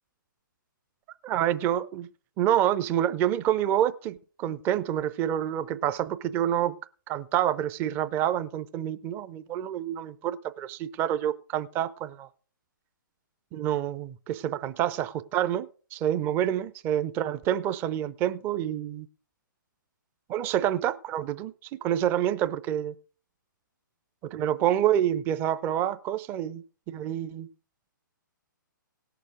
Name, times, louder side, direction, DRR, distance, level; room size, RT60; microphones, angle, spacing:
voice 1, 1.2-2.1 2.4-6.8 7.1-12.3 13.5-19.1 20.3-21.5 21.8-22.9 24.2-27.5, right 11 dB, 20° right, 0.5 m, -27 dB
17.5 x 6.8 x 4.9 m
figure-of-eight pair, 125°, 11 cm